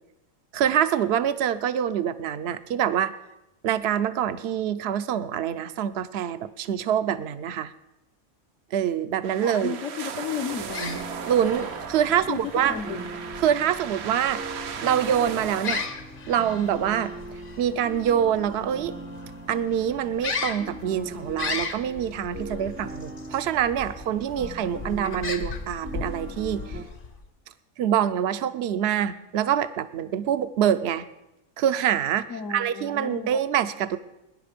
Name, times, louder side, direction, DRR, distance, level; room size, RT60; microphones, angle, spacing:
voice 1, 0.5-3.1 3.6-7.7 8.7-9.8 11.3-12.7 13.4-14.4 14.8-15.8 16.3-17.1 17.6-18.9 19.5-26.6 27.8-31.1 31.6-34.0, right 9 dB, 55° right, 13 dB, 0.8 m, -25 dB
sound 1, 9.2-15.9, right 7 dB, 80° right, 1.3 m, -37 dB
voice 2, 9.4-11.1 12.1-13.2 32.3-33.3, left 6 dB, 65° left, 6 dB, 1.2 m, -33 dB
sound 2, 10.6-27.3, left 4 dB, 45° left, 1.0 m, -37 dB
sound 3, 10.8-26.8, right 2 dB, 15° right, 0.5 m, -41 dB
18.5 x 10.5 x 5.2 m, 0.93 s
omnidirectional pair, 1.5 m